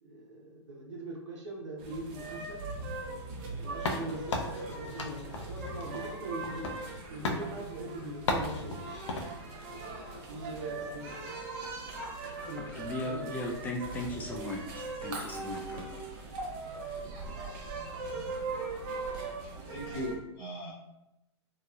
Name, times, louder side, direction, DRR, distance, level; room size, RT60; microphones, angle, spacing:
voice 1, 0.0-2.6 3.6-6.7 7.1-8.8 10.3-11.1 12.4-13.4, right 1 dB, 85° right, -3 dB, 0.7 m, -41 dB
sound 1, 1.8-20.1, right 3 dB, 40° right, 0.6 m, -40 dB
sound 2, 3.8-7.0 7.2-7.5 8.3-9.3, left 2 dB, 75° left, 0.5 m, -35 dB
voice 2, 12.3-16.1, left 1 dB, 10° left, 0 dB, 0.3 m, -38 dB
voice 3, 19.5-20.7, equal, 45° left, -6 dB, 0.9 m, -38 dB
2.9 x 2.1 x 2.3 m, 0.91 s
hypercardioid pair, 120°, 15 cm